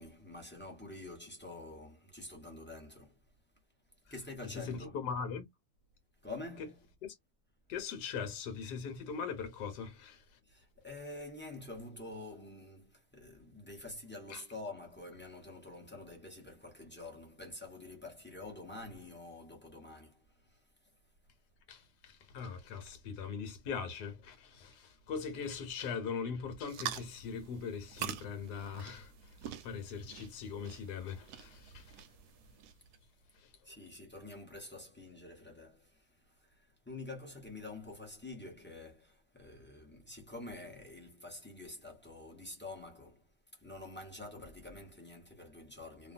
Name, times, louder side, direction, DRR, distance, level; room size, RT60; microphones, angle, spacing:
voice 1, 0.0-3.2 4.1-5.0 6.2-6.8 10.5-20.6 33.6-46.1, left 2 dB, 10° left, 0.6 m, -48 dB
voice 2, 4.5-5.5 6.6-6.7 7.7-10.2 14.3-14.4 21.7-32.0 33.4-33.5, left 6 dB, 70° left, 1.4 m, -41 dB
sound 1, 26.7-33.0, right 10 dB, 75° right, 1.1 m, -46 dB
2.8 x 2.6 x 2.5 m
omnidirectional pair, 1.9 m